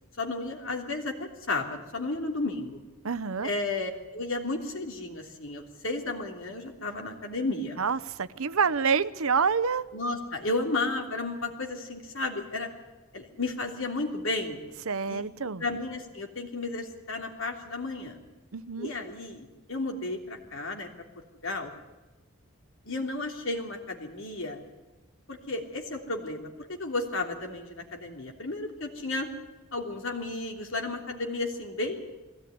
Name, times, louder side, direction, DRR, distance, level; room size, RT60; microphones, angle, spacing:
voice 1, 0.2-2.8 3.4-7.8 9.9-12.7 13.1-14.6 15.1-15.2 15.6-18.2 18.8-20.9 21.4-21.7 22.8-24.6 25.3-29.3 29.7-32.2, left 2 dB, 65° left, 3.2 m, -33 dB
voice 2, 3.0-3.5 7.8-9.8 14.9-15.6 18.5-18.9, right 5 dB, 75° right, 0.8 m, -27 dB
21.0 x 16.5 x 9.5 m
head